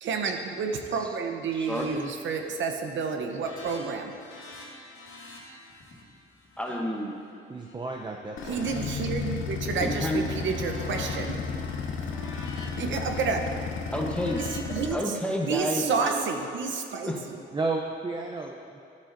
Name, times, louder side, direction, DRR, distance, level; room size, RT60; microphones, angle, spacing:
voice 1, 0.0-4.1 8.5-11.4 12.8-13.7 14.4-15.1 15.5-17.4, right 5 dB, 70° right, 4 dB, 0.8 m, -30 dB
sound 1, 1.4-1.9 2.2-2.6 2.9-7.7 8.2-9.6 9.9-15.0, left 2 dB, 85° left, 2.1 m, -47 dB
voice 2, 1.6-2.0 6.6-7.2 9.8-10.2 13.9-14.5 14.9-16.3 17.0-17.2, equal, 5° left, 0 dB, 1.0 m, -30 dB
voice 3, 7.5-8.7 17.5-18.8, right 3 dB, 20° right, 0 dB, 0.5 m, -32 dB
sound 2, 8.4-14.9, left 5 dB, 70° left, 0.8 m, -33 dB
12.0 x 8.3 x 2.6 m, 2.6 s
cardioid pair, 110°, 21 cm